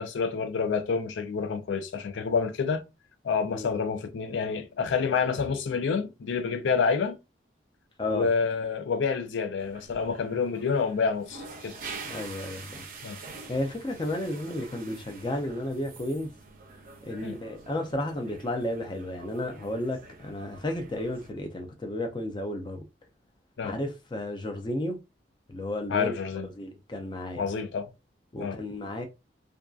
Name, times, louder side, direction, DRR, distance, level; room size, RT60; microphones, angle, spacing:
voice 1, 0.0-2.8 3.2-7.2 8.1-11.8 13.0-13.2 17.2-17.4 23.6-23.8 25.9-26.5 27.4-27.9 28.4-28.6, left 5 dB, 80° left, 0.4 m, -28 dB
voice 2, 8.0-8.3 12.1-12.8 13.5-16.3 17.0-22.8 23.6-25.0 25.5-26.1 26.6-27.5 28.3-29.0, left 1 dB, 25° left, 0.4 m, -32 dB
sound 1, 9.6-21.3, right 4 dB, 50° right, 0.5 m, -46 dB
2.6 x 2.3 x 2.3 m
head